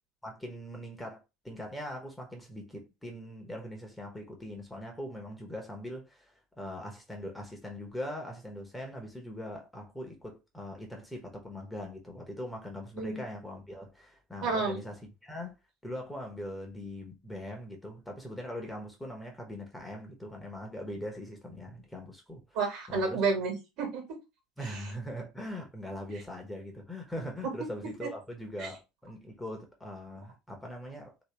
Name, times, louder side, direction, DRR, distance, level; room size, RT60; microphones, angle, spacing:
voice 1, 0.2-15.6 15.8-22.4 22.9-23.2 24.6-31.1, left 1 dB, 5° left, 1.3 m, -41 dB
voice 2, 14.4-14.8 22.5-24.0 27.4-27.5 28.0-28.1 28.6-28.7, right 4 dB, 55° right, 1.7 m, -30 dB
3.2 x 3.0 x 3.4 m
figure-of-eight pair, 70°, 0 cm